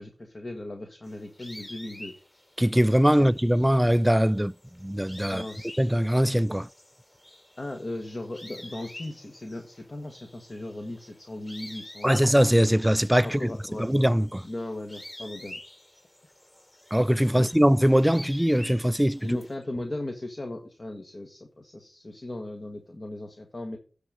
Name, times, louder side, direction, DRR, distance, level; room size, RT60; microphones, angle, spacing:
voice 1, 0.0-2.1 3.2-3.3 5.3-5.7 7.6-12.1 13.2-13.9 14.4-15.6 16.2-16.3 17.3-17.5 19.2-23.8, left 1 dB, 55° left, 1.4 m, -37 dB
sound 1, 1.0-19.5, left 1 dB, 35° left, 3.4 m, -48 dB
voice 2, 2.6-4.5 4.8-5.4 5.8-6.7 12.0-13.5 13.8-14.4 16.9-19.4, equal, 10° right, 0.3 m, -21 dB
9.6 x 4.0 x 7.3 m
cardioid pair, 40°, 0 cm